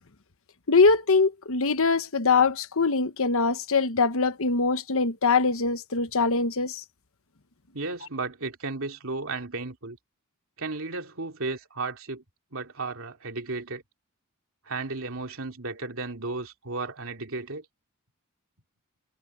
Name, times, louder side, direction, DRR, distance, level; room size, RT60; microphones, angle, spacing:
voice 1, 0.7-6.8, left 4 dB, 65° left, 1.2 m, -23 dB
voice 2, 7.7-10.0 10.6-12.2 12.5-13.8 14.6-17.6, right 3 dB, 65° right, 3.1 m, -34 dB
head